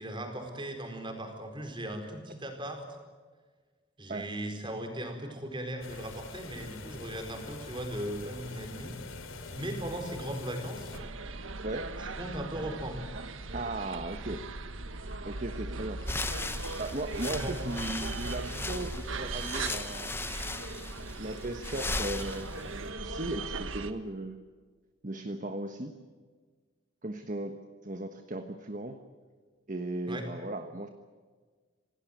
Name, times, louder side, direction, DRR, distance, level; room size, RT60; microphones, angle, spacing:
voice 1, 0.0-2.8 4.0-9.0 9.2-10.9 12.0-13.0 17.2-17.6 18.3-18.5 30.1-30.3, right 1 dB, 25° right, 5 dB, 4.6 m, -38 dB
sound 1, 5.8-11.0, left 3 dB, 75° left, 3.2 m, -44 dB
sound 2, 10.9-23.9, right 3 dB, 75° right, 1.5 m, -39 dB
voice 2, 11.6-11.9 13.5-14.4 15.3-16.0 16.8-20.1 20.9-22.6 23.0-24.4 25.0-25.9 27.0-29.0 29.7-30.9, right 2 dB, 40° right, 7 dB, 1.3 m, -37 dB
sound 3, 16.0-22.9, left 3 dB, 10° left, 0.8 m, -38 dB
27.0 x 18.0 x 9.3 m, 1.5 s
head